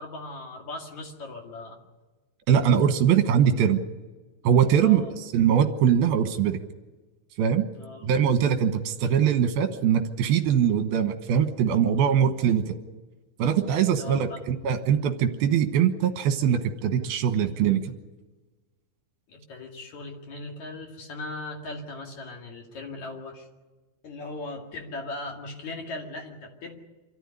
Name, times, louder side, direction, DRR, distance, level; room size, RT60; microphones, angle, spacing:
voice 1, 0.0-1.8 4.8-5.1 7.7-8.1 13.9-14.5 19.3-23.5 24.0-26.8, left 2 dB, 50° left, 1 dB, 3.3 m, -38 dB
voice 2, 2.5-3.8 4.4-6.6 7.4-7.6 8.0-12.8 13.4-17.9, right 8 dB, 75° right, 7 dB, 3.0 m, -22 dB
26.0 x 13.5 x 9.8 m, 1.2 s
omnidirectional pair, 4.6 m